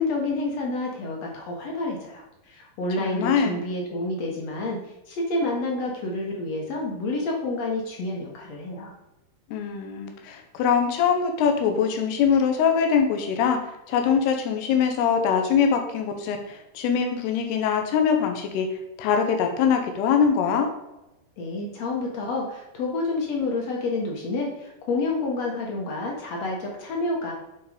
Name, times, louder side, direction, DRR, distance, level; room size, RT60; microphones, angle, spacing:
voice 1, 0.0-4.8 5.1-8.9 21.4-27.3, left 2 dB, 60° left, 0 dB, 1.9 m, -29 dB
voice 2, 3.0-3.6 9.5-13.6 13.9-18.7 19.0-20.7, left 7 dB, 85° left, 4 dB, 3.1 m, -23 dB
9.2 x 4.4 x 5.0 m, 0.95 s
omnidirectional pair, 4.5 m